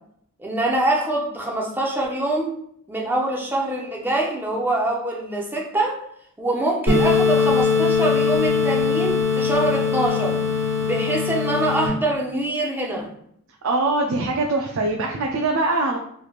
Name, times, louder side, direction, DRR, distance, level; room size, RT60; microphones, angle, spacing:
voice 1, 0.4-2.5 2.9-6.0 6.4-10.4 10.8-13.1, right 1 dB, 10° right, -2 dB, 0.6 m, -24 dB
sound 1, 6.9-11.9, left 5 dB, 85° right, 1.0 m, -21 dB
voice 2, 13.6-16.0, right 2 dB, 65° right, 1 dB, 0.4 m, -22 dB
3.2 x 3.0 x 2.4 m, 0.69 s
head